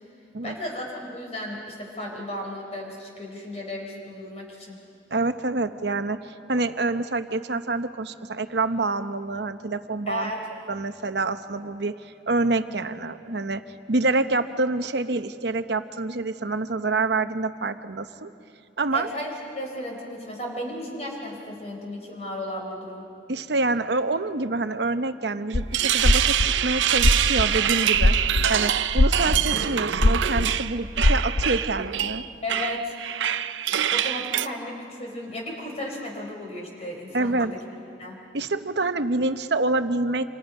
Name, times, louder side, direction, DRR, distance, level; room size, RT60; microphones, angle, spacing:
voice 1, 0.4-4.8 10.1-10.5 18.9-23.1 32.4-33.0 33.9-37.6 38.0-38.2, left 1 dB, 35° left, 0 dB, 4.8 m, -34 dB
voice 2, 5.1-10.3 10.7-12.0 12.3-13.6 13.9-18.3 18.8-19.1 23.3-28.2 28.5-32.2 37.1-37.6 38.3-40.3, right 3 dB, 65° right, 10 dB, 0.9 m, -26 dB
sound 1, 25.5-25.7 26.0-28.5 28.7-29.5 29.9-31.5, left 1 dB, 55° left, 0.8 m, -20 dB
sound 2, 25.5-34.5, right 10 dB, 90° right, 0.6 m, -25 dB
29.0 x 26.5 x 5.5 m, 2.5 s
head